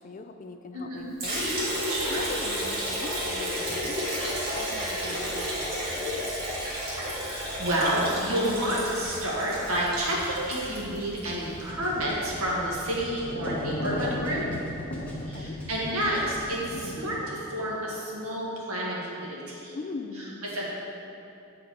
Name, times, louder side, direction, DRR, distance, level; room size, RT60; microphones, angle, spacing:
voice 1, 0.0-1.5 1.8-6.3 15.2-15.6 19.7-20.4, left 3 dB, 35° left, 6 dB, 0.3 m, -41 dB
sound 1, 1.2-16.5, equal, 5° left, 0.8 m, -47 dB
Liquid, 1.2-11.3, equal, 45° right, 1.8 m, -32 dB
voice 2, 1.9-2.2 7.1-14.4 15.3-19.7 20.5-20.6, equal, 85° right, -4 dB, 1.6 m, -29 dB
sound 2, 11.4-17.3, left 1 dB, 55° left, 1.1 m, -36 dB
8.0 x 4.6 x 5.0 m, 2.7 s
head